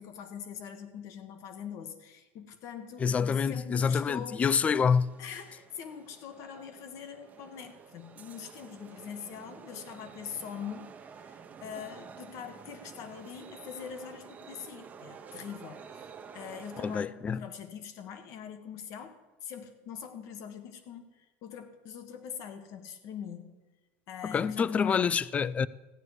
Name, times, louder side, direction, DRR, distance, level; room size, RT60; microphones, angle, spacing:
voice 1, 0.0-4.5 5.2-23.5 24.1-25.1, left 8 dB, 55° left, 1.2 m, -43 dB
voice 2, 3.0-5.1 16.8-17.4 24.2-25.7, left 6 dB, 20° left, 0.3 m, -27 dB
sound 1, 4.2-17.0, right 6 dB, 25° right, 0.8 m, -50 dB
15.0 x 9.6 x 4.8 m
supercardioid pair, 130°, 6 cm